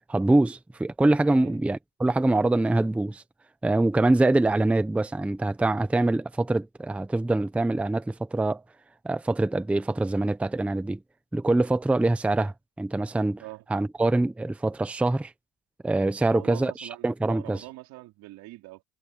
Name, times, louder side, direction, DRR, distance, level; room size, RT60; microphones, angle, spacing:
voice 1, 0.1-3.2 3.6-8.6 9.0-11.0 11.3-13.4 13.7-15.3 15.8-17.6, right 2 dB, 5° right, 0.6 m, -24 dB
voice 2, 16.2-18.8, right 18 dB, 85° right, 3.5 m, -43 dB
cardioid pair, 180°, 35 cm